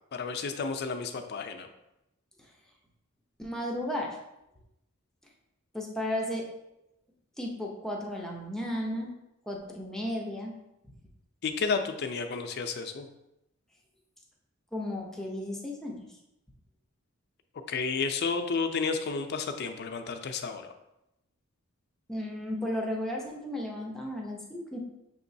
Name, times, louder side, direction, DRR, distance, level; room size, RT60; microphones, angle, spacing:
voice 1, 0.1-1.7 11.4-13.1 17.7-20.7, left 5 dB, 50° left, 7 dB, 0.4 m, -31 dB
voice 2, 3.4-4.2 5.7-6.5 7.4-9.1 9.5-10.6 14.7-16.0 22.1-24.8, left 1 dB, ahead, -2 dB, 0.6 m, -34 dB
6.3 x 2.9 x 2.6 m, 0.88 s
head